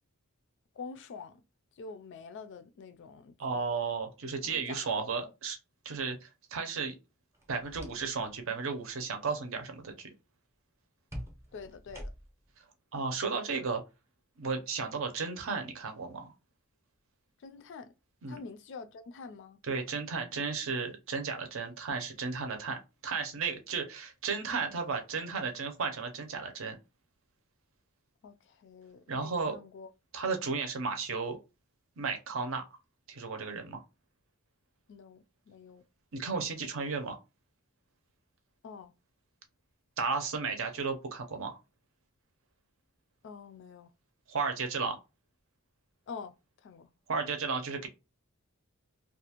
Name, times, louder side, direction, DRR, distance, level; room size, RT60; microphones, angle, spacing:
voice 1, 0.8-1.4 1.8-3.6 4.4-5.3 11.5-12.1 17.4-17.9 18.3-19.6 28.2-29.9 34.9-35.8 38.6-38.9 43.2-43.9 46.1-46.3 46.6-46.9, left 5 dB, 55° left, 0.3 m, -46 dB
voice 2, 3.4-5.6 5.8-7.0 7.5-10.1 12.9-13.8 14.4-16.3 18.2-18.4 19.6-26.8 29.1-29.6 30.1-31.4 32.0-32.6 33.1-33.8 36.1-37.2 40.0-41.6 44.3-45.0 47.1-47.9, right 4 dB, 65° right, 0.6 m, -34 dB
sound 1, 7.3-8.4 8.7-9.0 11.1-12.5, equal, 15° right, 0.6 m, -45 dB
2.5 x 2.3 x 2.9 m
head